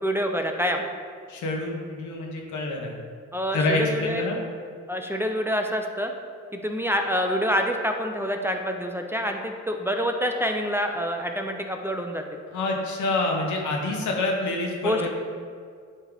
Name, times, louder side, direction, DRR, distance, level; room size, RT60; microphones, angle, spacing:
voice 1, 0.0-0.8 3.3-4.2 4.9-6.1 6.5-12.2 14.8-15.1, equal, 10° right, 3 dB, 0.5 m, -26 dB
voice 2, 1.3-3.0 3.5-4.4 12.5-15.1, left 2 dB, 90° left, 0 dB, 1.2 m, -27 dB
9.0 x 3.3 x 3.8 m, 2.1 s
cardioid pair, 100°, 29 cm